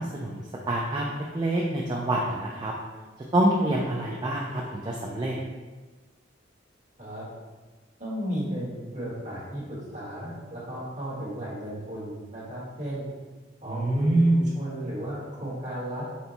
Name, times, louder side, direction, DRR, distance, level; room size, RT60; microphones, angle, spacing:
voice 1, 0.0-2.7 3.3-5.4 13.7-14.4, right 1 dB, 25° right, -2 dB, 0.3 m, -26 dB
voice 2, 8.0-13.1 13.6-16.1, equal, 40° right, -7 dB, 1.3 m, -34 dB
4.3 x 2.2 x 3.9 m, 1.3 s
head